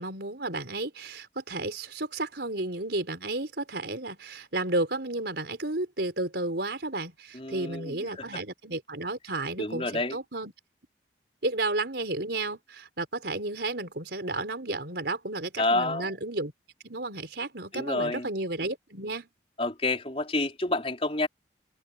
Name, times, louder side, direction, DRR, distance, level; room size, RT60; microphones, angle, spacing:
voice 1, 0.0-10.5 11.4-16.5 16.8-19.3, right 2 dB, 65° right, 4.4 m, -32 dB
voice 2, 7.3-8.0 9.6-10.2 15.6-16.1 17.7-18.3 19.6-21.3, left 2 dB, 30° left, 4.5 m, -28 dB
open air
head